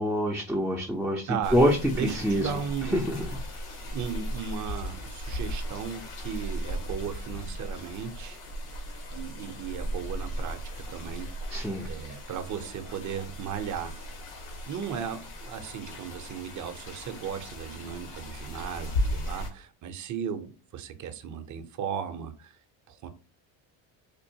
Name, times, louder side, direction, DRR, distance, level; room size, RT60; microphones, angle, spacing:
voice 1, 0.0-2.5 2.8-3.2 11.5-11.9, equal, ahead, 0.5 m, -26 dB
voice 2, 1.3-1.6 1.9-3.0 3.8-8.4 9.1-11.3 11.8-14.0 14.7-22.6 22.9-23.1, right 7 dB, 35° right, 0.7 m, -36 dB
sound 1, 1.4-19.5, equal, 70° left, 1.6 m, -36 dB
4.5 x 2.4 x 2.8 m
supercardioid pair, 95°, 50 cm